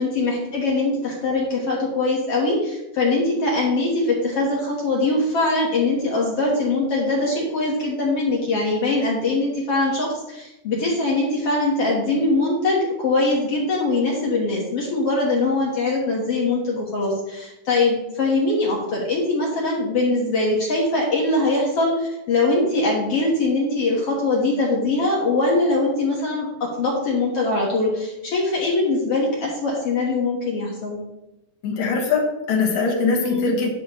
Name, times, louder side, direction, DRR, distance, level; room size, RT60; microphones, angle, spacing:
voice 1, 0.0-31.0 33.2-33.5, left 2 dB, 55° left, -3 dB, 1.9 m, -22 dB
voice 2, 31.6-33.7, left 4 dB, 80° left, 0 dB, 3.2 m, -22 dB
11.0 x 6.3 x 3.0 m, 0.93 s
omnidirectional pair, 4.0 m